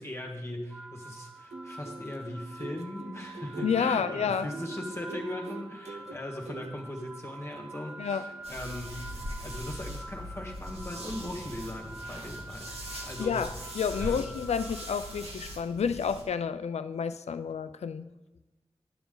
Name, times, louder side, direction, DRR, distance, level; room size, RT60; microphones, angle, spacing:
voice 1, 0.0-13.6 13.9-14.3, left 1 dB, 25° left, 0 dB, 1.6 m, -39 dB
sound 1, 0.7-15.8, right 2 dB, 10° right, 0.6 m, -46 dB
sound 2, 1.4-8.6 8.8-9.0, right 3 dB, 85° right, 0.6 m, -44 dB
voice 2, 3.6-4.5 8.0-8.2 12.9-18.0, left 7 dB, 85° left, 12 dB, 0.4 m, -30 dB
sound 3, 8.4-16.2, equal, 65° right, 2.0 m, -41 dB
10.0 x 7.1 x 3.9 m, 1.0 s
cardioid pair, 40°, 11 cm